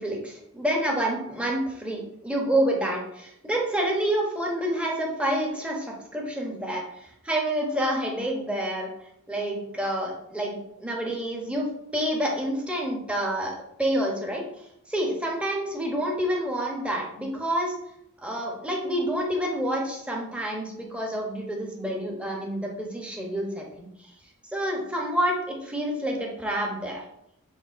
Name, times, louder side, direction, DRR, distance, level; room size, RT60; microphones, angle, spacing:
voice 1, 0.0-8.9 9.3-14.4 14.9-17.7 18.2-23.9 24.5-27.0, right 1 dB, 5° right, -1 dB, 0.7 m, -28 dB
6.1 x 2.4 x 2.4 m, 0.76 s
head